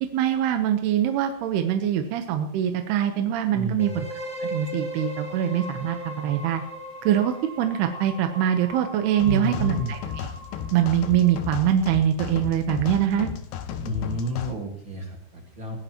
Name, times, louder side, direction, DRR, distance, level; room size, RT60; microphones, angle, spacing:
voice 1, 0.0-4.0 4.4-6.6 7.0-10.0 10.7-13.3, right 10 dB, 80° right, 6 dB, 3.0 m, -23 dB
voice 2, 3.5-4.0 9.2-10.0 13.8-15.8, right 1 dB, 40° right, 0 dB, 1.9 m, -30 dB
sound 1, 3.8-11.6, equal, 15° left, 2.3 m, -38 dB
sound 2, 9.2-14.5, left 8 dB, 90° left, 3.1 m, -34 dB
21.0 x 15.5 x 3.0 m, 0.63 s
omnidirectional pair, 4.7 m